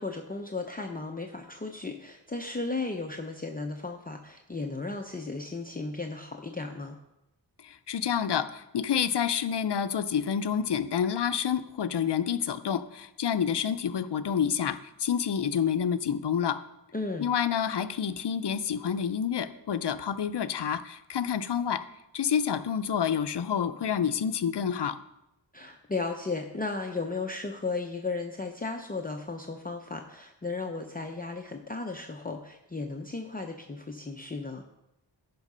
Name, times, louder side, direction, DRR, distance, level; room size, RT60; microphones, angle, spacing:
voice 1, 0.0-7.0 16.9-17.3 25.5-34.6, left 3 dB, 20° left, 3 dB, 0.6 m, -35 dB
voice 2, 7.6-16.6 17.2-21.8 22.1-25.0, left 8 dB, 65° left, 12 dB, 0.6 m, -28 dB
11.0 x 4.7 x 5.5 m, 0.89 s
wide cardioid pair, 70°, 43 cm